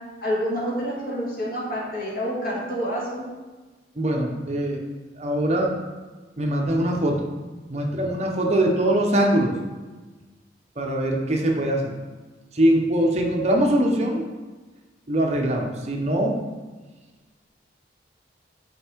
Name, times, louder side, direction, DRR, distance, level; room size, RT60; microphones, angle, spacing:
voice 1, 0.2-3.2, equal, 55° left, -4 dB, 1.6 m, -28 dB
voice 2, 4.0-4.8 5.1-5.8 6.4-7.3 7.7-9.6 10.8-11.9 12.5-14.3 15.1-16.4, right 1 dB, 35° right, 1 dB, 0.7 m, -22 dB
5.3 x 4.4 x 4.5 m, 1.3 s
head